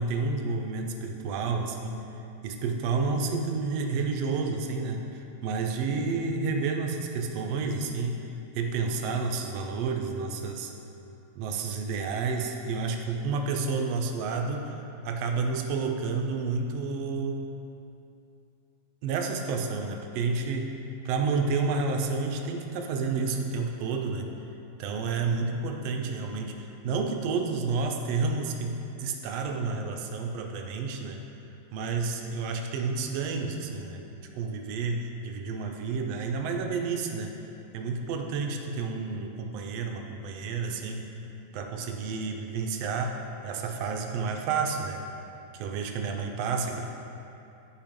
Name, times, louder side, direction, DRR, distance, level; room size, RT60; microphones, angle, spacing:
voice 1, 0.0-2.1 2.4-8.2 8.5-10.7 11.3-17.6 19.0-20.8 21.0-24.3 24.8-31.2 31.7-34.1 34.3-37.4 37.7-41.1 41.5-45.0 45.5-46.8, right 4 dB, 75° right, 3 dB, 1.5 m, -30 dB
9.6 x 5.1 x 5.2 m, 2.7 s
omnidirectional pair, 3.4 m